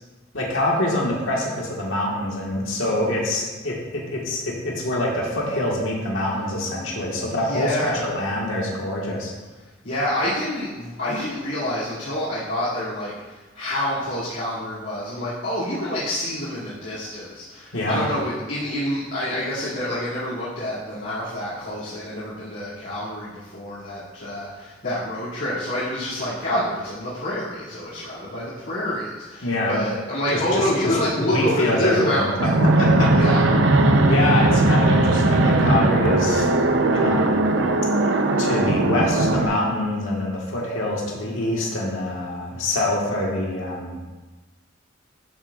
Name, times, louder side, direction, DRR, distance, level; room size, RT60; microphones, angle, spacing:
voice 1, 0.3-9.3 17.7-18.1 29.4-29.8 30.3-33.1 34.1-36.5 36.9-37.6 38.4-44.0, left 1 dB, 90° left, -3 dB, 1.6 m, -25 dB
voice 2, 7.4-8.1 9.8-32.3 32.8-33.9, left 1 dB, 70° left, -13 dB, 2.5 m, -27 dB
Fixed-wing aircraft airplane, 32.4-39.5, right 2 dB, 65° right, 0.6 m, -18 dB
12.0 x 6.2 x 2.4 m, 1.2 s
head